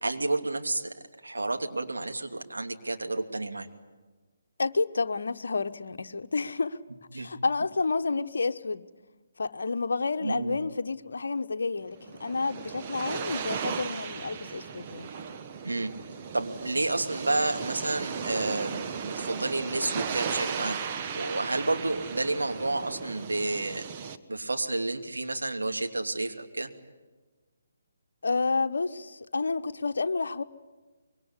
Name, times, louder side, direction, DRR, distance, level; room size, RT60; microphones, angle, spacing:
voice 1, 0.0-3.7 7.1-7.3 10.2-10.6 15.6-15.9 16.3-20.8 21.1-23.8 24.3-26.7, right 2 dB, 75° right, 2.7 m, -30 dB
voice 2, 4.6-6.8 7.1-8.8 9.4-15.1 28.2-30.4, left 4 dB, 65° left, 1.1 m, -30 dB
sound 1, 11.9-24.2, right 6 dB, 30° right, 1.3 m, -36 dB
25.0 x 22.5 x 9.9 m
figure-of-eight pair, 145°, 0 cm